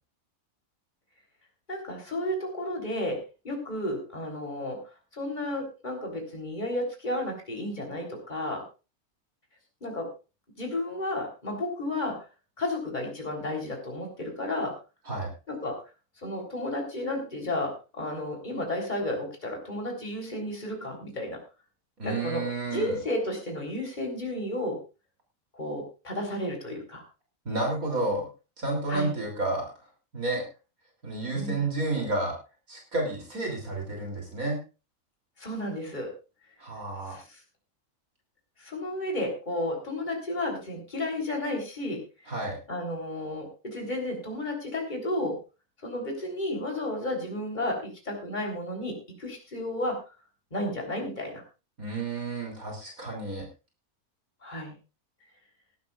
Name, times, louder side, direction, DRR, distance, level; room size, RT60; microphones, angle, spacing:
voice 1, 1.7-3.2 3.4-4.8 5.1-8.6 9.8-10.1 10.6-12.2 12.6-14.7 15.5-15.8 16.2-21.4 22.0-24.8 25.5-27.0 28.9-29.1 31.3-31.6 35.4-36.1 37.1-37.4 38.6-42.0 42.7-45.4 45.8-50.1 50.5-51.4 54.4-54.7, left 1 dB, 30° left, 1 dB, 3.8 m, -32 dB
voice 2, 22.0-23.0 27.5-28.2 28.6-29.7 30.1-30.4 31.0-32.3 32.7-34.6 36.6-37.2 42.3-42.6 51.8-53.5, right 2 dB, 65° right, 1 dB, 3.8 m, -30 dB
19.5 x 12.0 x 2.5 m, 0.32 s
omnidirectional pair, 1.6 m